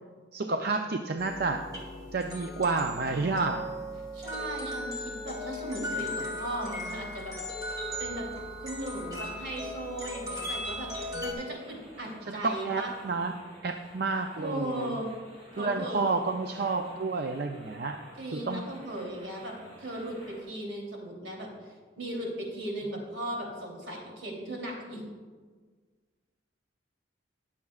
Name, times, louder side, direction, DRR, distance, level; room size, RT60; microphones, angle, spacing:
voice 1, 0.3-1.6 2.1-3.7 11.1-11.2 12.3-13.3 13.6-15.0 15.6-18.0 18.3-18.6, right 3 dB, 55° right, 4 dB, 0.5 m, -30 dB
sound 1, 1.2-11.3, equal, 20° right, 1.8 m, -37 dB
voice 2, 4.1-7.3 8.0-8.3 8.6-10.9 11.2-12.9 14.4-15.1 15.6-16.2 18.2-25.0, right 1 dB, 75° right, -1 dB, 3.1 m, -37 dB
sound 2, 10.8-20.4, equal, 35° right, 3.2 m, -53 dB
20.0 x 7.3 x 2.4 m, 1.5 s
head